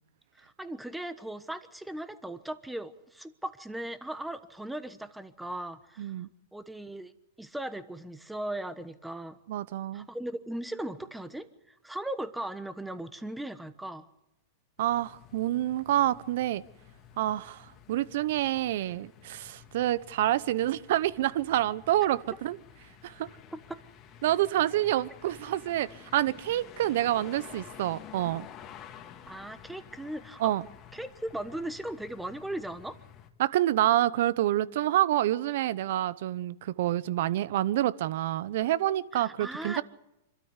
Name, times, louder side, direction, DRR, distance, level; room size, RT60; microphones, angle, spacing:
voice 1, 0.4-6.1 6.5-7.1 7.4-9.4 9.9-14.1 23.5-23.8 29.3-30.5 30.9-33.0 39.1-39.8, right 1 dB, 5° right, 1.2 m, -38 dB
voice 2, 6.0-6.3 9.5-10.1 14.8-16.6 17.2-22.6 23.0-23.3 24.2-28.5 30.4-30.6 33.4-39.8, right 13 dB, 65° right, 0.8 m, -27 dB
sound 1, 14.8-33.3, left 9 dB, 30° left, 1.9 m, -51 dB
25.5 x 13.0 x 8.2 m
hypercardioid pair, 130°, 0 cm